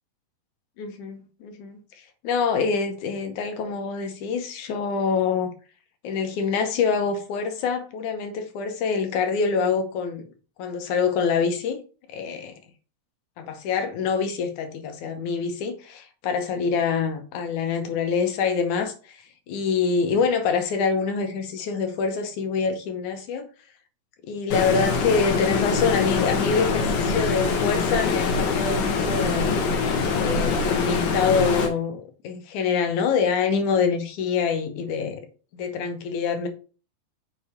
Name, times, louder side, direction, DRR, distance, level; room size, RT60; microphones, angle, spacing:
voice 1, 0.8-5.5 6.0-10.3 10.6-11.8 12.1-12.5 13.4-23.5 24.2-29.6 30.1-35.2 35.5-36.5, left 5 dB, 70° left, 2.1 m, -25 dB
Stream, 24.5-31.7, left 4 dB, 85° left, 3.0 m, -24 dB
6.8 x 4.4 x 4.2 m
omnidirectional pair, 4.1 m